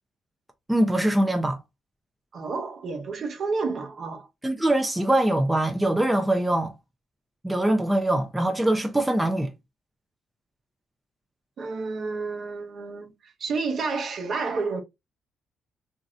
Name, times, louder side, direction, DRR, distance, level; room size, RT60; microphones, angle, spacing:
voice 1, 0.7-1.6 4.4-6.7 7.4-9.5, right 1 dB, 10° right, 0.5 m, -23 dB
voice 2, 2.3-4.3 11.6-14.8, right 4 dB, 55° right, 0.8 m, -30 dB
3.0 x 2.6 x 2.4 m
cardioid pair, 90°, 0 cm